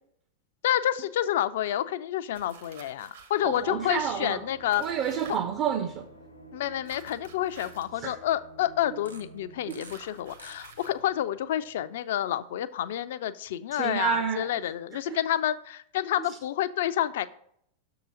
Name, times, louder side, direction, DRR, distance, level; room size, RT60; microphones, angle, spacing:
voice 1, 0.6-4.8 6.5-17.3, left 12 dB, 55° left, 0.3 m, -29 dB
sound 1, 2.3-3.4 4.7-5.4 6.8-7.9 9.8-11.0, right 6 dB, 60° right, 1.2 m, -50 dB
sound 2, 3.4-11.9 12.1-12.3, right 1 dB, 90° left, 0.9 m, -51 dB
voice 2, 3.4-4.4 4.8-6.1 8.0-8.2 9.7-9.8 13.8-14.5 15.1-15.2, right 8 dB, 35° right, 0.5 m, -29 dB
sound 3, 5.4-5.5 5.9-6.0 6.7-6.8 8.9-10.0 10.3-11.0, right 2 dB, 85° right, 0.9 m, -50 dB
6.6 x 3.9 x 6.3 m
figure-of-eight pair, 90°, 0 cm